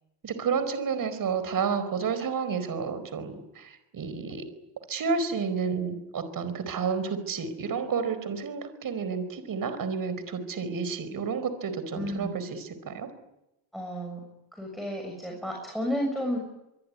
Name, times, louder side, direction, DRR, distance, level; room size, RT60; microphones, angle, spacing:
voice 1, 0.2-4.4 4.9-12.5 12.8-13.1, right 5 dB, 40° right, 12 dB, 4.7 m, -30 dB
voice 2, 11.9-12.4 13.7-14.2 14.5-16.4, equal, ahead, 1 dB, 6.7 m, -32 dB
24.5 x 23.5 x 9.8 m, 0.91 s
cardioid pair, 135°, 50 cm